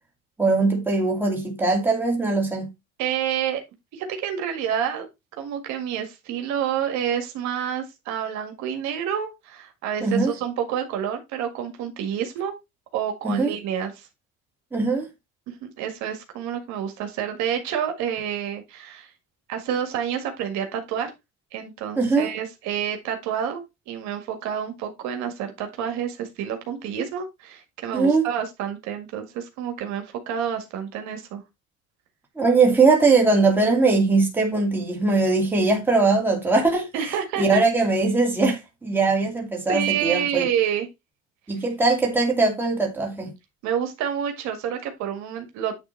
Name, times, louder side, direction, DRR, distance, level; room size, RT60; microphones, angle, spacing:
voice 1, 0.4-2.7 10.0-10.3 13.2-13.5 14.7-15.1 22.0-22.3 27.9-28.3 32.4-40.5 41.5-43.3, right 3 dB, 5° right, 2.3 m, -21 dB
voice 2, 3.0-3.6 3.9-5.1 5.4-12.5 12.9-14.1 15.5-19.1 19.5-21.1 21.5-31.4 36.9-37.6 39.7-40.9 43.6-45.7, right 9 dB, 70° right, 1.8 m, -28 dB
9.9 x 3.4 x 4.4 m
cardioid pair, 165°, 29 cm